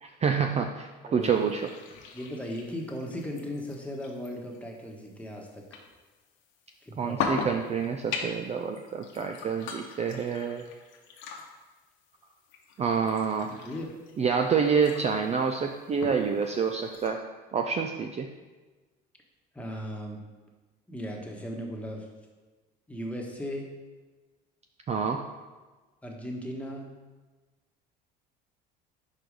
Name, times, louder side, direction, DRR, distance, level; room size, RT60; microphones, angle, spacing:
voice 1, 0.0-1.7 7.0-10.6 12.8-13.6 14.2-17.2 17.5-18.3 24.9-25.3, right 6 dB, 30° right, 5 dB, 0.4 m, -27 dB
sound 1, 1.2-17.1, left 5 dB, 70° left, 1.0 m, -41 dB
voice 2, 2.1-5.6 6.8-7.2 13.6-13.9 19.5-20.2 20.9-22.1 22.9-23.8 26.0-26.9, equal, 5° left, 0 dB, 1.3 m, -37 dB
4.8 x 4.6 x 5.1 m, 1.3 s
supercardioid pair, 85°, 21 cm